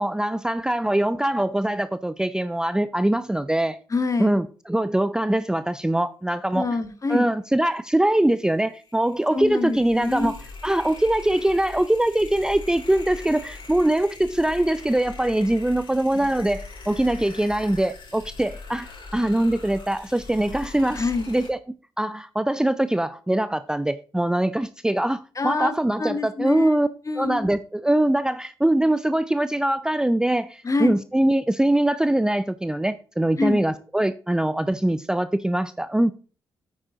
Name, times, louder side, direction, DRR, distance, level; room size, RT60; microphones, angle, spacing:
voice 1, 0.0-3.8 4.2-6.7 7.1-21.6 22.0-26.9 27.2-36.1, right 1 dB, 10° right, 0.5 m, -23 dB
voice 2, 3.9-4.4 6.5-7.3 9.3-10.3 20.9-21.3 25.3-25.7 26.0-26.7 27.1-27.5 30.6-30.9 33.4-33.6, left 3 dB, 35° left, 1.6 m, -26 dB
sound 1, 8.4-21.5, left 3 dB, 60° left, 5.4 m, -41 dB
8.9 x 8.8 x 3.8 m
cardioid pair, 65°, 9 cm